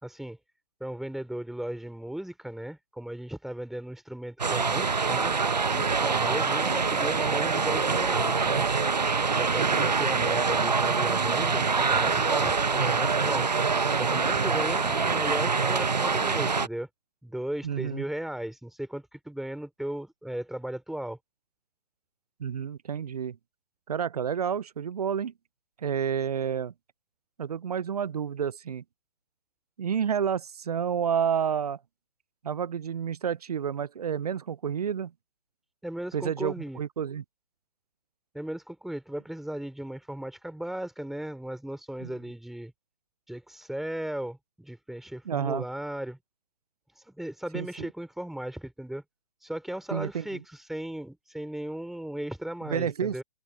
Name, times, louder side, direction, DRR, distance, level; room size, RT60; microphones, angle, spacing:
voice 1, 0.0-0.4 0.8-5.4 5.7-8.7 9.4-13.5 13.9-16.9 17.2-21.2 35.8-36.8 38.3-42.7 43.3-46.2 47.1-49.0 49.4-50.4 50.7-53.2, right 1 dB, ahead, 4.2 m, -36 dB
sound 1, 4.4-16.7, right 4 dB, 85° right, 1.0 m, -25 dB
voice 2, 9.6-9.9 17.6-18.0 22.4-23.4 23.9-25.3 25.8-26.7 27.4-28.8 29.8-31.8 32.4-35.1 36.1-37.2 42.0-42.1 45.3-45.6 47.5-47.9 49.9-50.4 52.6-53.2, right 8 dB, 70° right, 0.7 m, -30 dB
figure-of-eight pair, 135°, 21 cm